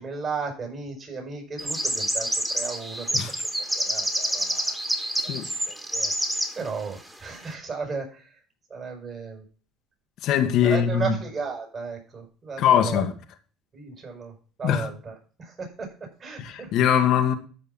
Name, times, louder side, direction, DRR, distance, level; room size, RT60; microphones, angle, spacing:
voice 1, 0.0-4.7 5.2-6.1 6.5-8.4 8.7-9.4 10.6-13.1 13.7-14.3 14.6-17.1, right 4 dB, 35° right, 6.8 m, -35 dB
sound 1, 1.6-6.5, right 1 dB, 10° right, 2.9 m, -27 dB
voice 2, 10.2-11.2 12.6-13.1 14.6-14.9 16.4-17.3, left 9 dB, 65° left, 1.8 m, -21 dB
13.5 x 5.5 x 5.7 m
supercardioid pair, 95°, 0 cm